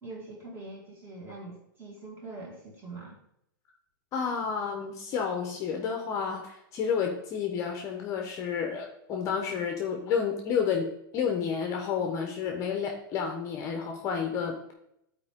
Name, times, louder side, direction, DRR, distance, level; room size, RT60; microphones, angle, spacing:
voice 1, 0.0-3.2, right 2 dB, 20° right, -2 dB, 2.0 m, -43 dB
voice 2, 4.1-14.7, left 6 dB, 30° left, 3 dB, 0.9 m, -30 dB
10.5 x 4.4 x 3.6 m, 0.77 s
supercardioid pair, 155°, 11 cm